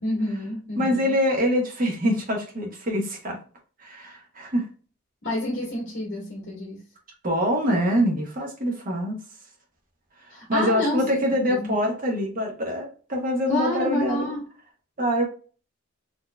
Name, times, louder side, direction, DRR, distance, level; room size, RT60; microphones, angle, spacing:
voice 1, 0.0-1.1 5.2-6.8 10.3-11.2 11.5-11.7 13.5-14.4, left 1 dB, 60° left, -4 dB, 1.6 m, -28 dB
voice 2, 0.8-3.4 3.8-4.7 7.2-9.2 10.2-14.3 15.0-15.2, equal, 40° right, 1 dB, 1.1 m, -25 dB
4.2 x 3.0 x 2.2 m, 0.39 s
head